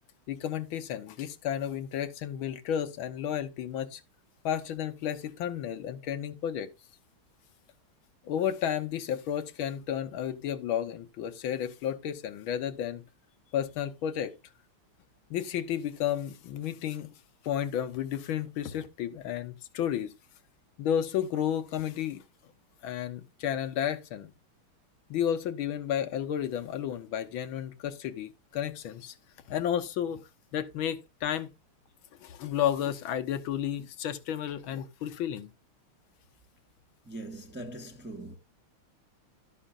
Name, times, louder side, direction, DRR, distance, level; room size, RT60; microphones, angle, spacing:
voice 1, 0.3-4.0 4.4-6.7 8.2-13.0 13.5-14.3 15.3-17.1 17.4-20.1 20.8-22.2 22.8-24.3 25.1-29.2 29.5-30.2 30.5-31.5 32.2-35.5, left 9 dB, 75° left, 1.7 m, -32 dB
voice 2, 37.0-38.4, right 1 dB, 5° right, 1.1 m, -41 dB
12.0 x 10.0 x 2.5 m
omnidirectional pair, 2.4 m